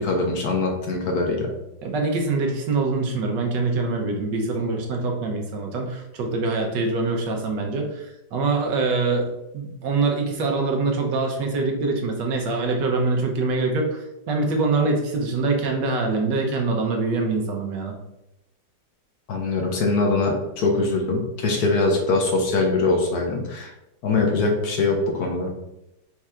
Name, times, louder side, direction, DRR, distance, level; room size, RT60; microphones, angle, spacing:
voice 1, 0.0-1.5 19.3-23.7 24.0-25.5, left 3 dB, 65° left, 1 dB, 1.2 m, -22 dB
voice 2, 1.8-17.9, right 3 dB, 75° right, 2 dB, 1.5 m, -24 dB
4.5 x 2.5 x 4.3 m, 0.88 s
omnidirectional pair, 2.0 m